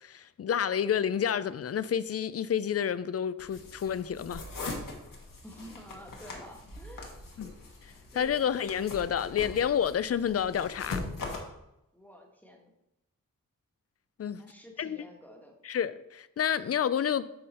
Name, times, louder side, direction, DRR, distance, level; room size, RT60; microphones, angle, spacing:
voice 1, 0.0-4.4 7.4-7.5 8.2-11.0 14.2-14.4 14.8-15.0 15.7-17.3, left 8 dB, 45° left, 15 dB, 0.4 m, -29 dB
sound 1, 3.4-11.4, left 3 dB, 75° left, 1.5 m, -41 dB
sound 2, 4.3-5.6 6.1-8.3 8.8-8.9, right 1 dB, 35° right, 1.4 m, -51 dB
voice 2, 5.4-7.2 8.1-8.4 11.9-12.7 14.4-15.5, equal, 5° left, 1 dB, 1.4 m, -50 dB
8.5 x 3.9 x 4.2 m, 0.87 s
cardioid pair, 50°, 33 cm